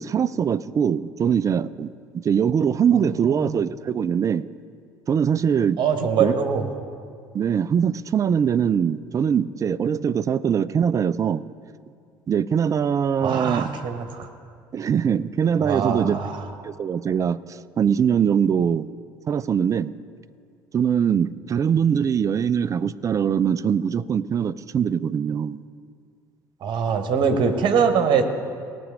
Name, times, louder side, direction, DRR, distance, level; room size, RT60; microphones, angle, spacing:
voice 1, 0.0-1.9 2.1-4.5 5.1-5.8 6.2-6.4 7.3-11.4 12.3-13.7 14.7-16.1 16.6-18.9 19.3-19.9 20.7-25.6, right 7 dB, 30° right, 17 dB, 0.4 m, -22 dB
voice 2, 3.2-3.6 5.8-6.7 13.2-14.3 15.6-16.5 26.6-28.2, right 6 dB, 45° right, 7 dB, 1.1 m, -23 dB
18.0 x 6.2 x 4.8 m, 2.2 s
figure-of-eight pair, 55°, 11 cm